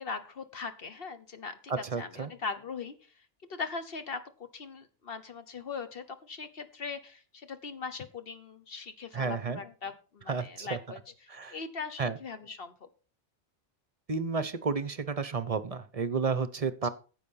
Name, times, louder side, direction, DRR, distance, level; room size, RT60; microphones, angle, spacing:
voice 1, 0.0-2.9 3.5-12.9, left 4 dB, 60° left, 10 dB, 1.2 m, -40 dB
voice 2, 1.7-2.3 9.1-9.6 10.3-10.8 11.3-11.6 12.0-12.2 14.1-16.9, right 5 dB, 40° right, 14 dB, 0.7 m, -31 dB
10.0 x 7.4 x 5.5 m, 0.37 s
omnidirectional pair, 1.2 m